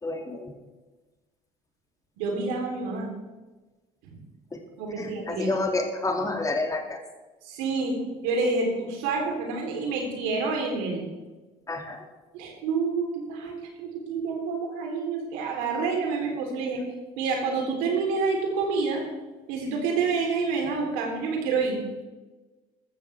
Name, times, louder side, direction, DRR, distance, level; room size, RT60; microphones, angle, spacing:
voice 1, 0.0-0.6 4.5-4.6 5.0-7.0 11.7-12.1, left 2 dB, 20° left, 3 dB, 2.4 m, -29 dB
voice 2, 2.2-3.1 4.0-4.1 4.8-5.5 7.4-8.0 8.2-11.0 12.3-13.5 13.8-16.8 17.2-19.0 19.5-21.8, right 4 dB, 80° right, 1 dB, 3.6 m, -28 dB
14.5 x 13.5 x 3.5 m, 1.2 s
supercardioid pair, 75°, 16 cm